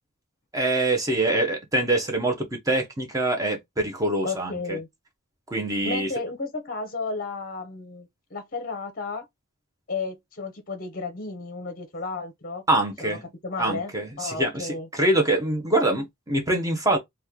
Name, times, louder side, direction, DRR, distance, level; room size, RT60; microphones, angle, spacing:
voice 1, 0.5-4.8 5.5-6.1 12.7-13.2 13.6-17.0, right 2 dB, 15° right, 0.6 m, -24 dB
voice 2, 4.2-4.9 5.8-9.2 9.9-12.6 13.0-13.2 13.4-13.9 14.2-14.9, left 3 dB, 40° left, 0.6 m, -33 dB
2.9 x 2.2 x 3.5 m
head